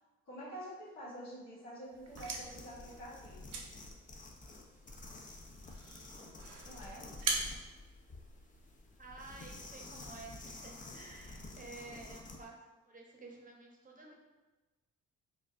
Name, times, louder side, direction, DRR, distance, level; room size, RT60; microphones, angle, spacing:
voice 1, 0.2-3.7 6.6-7.1, equal, 65° left, -9 dB, 1.3 m, -47 dB
sound 1, 1.9-8.7, right 3 dB, 55° right, 0.6 m, -43 dB
sound 2, 2.1-12.4, left 2 dB, 25° left, 0.5 m, -50 dB
voice 2, 9.0-12.5 12.9-14.1, right 3 dB, 25° right, -1 dB, 0.8 m, -51 dB
4.7 x 2.4 x 2.4 m, 1.2 s
cardioid pair, 90°, 30 cm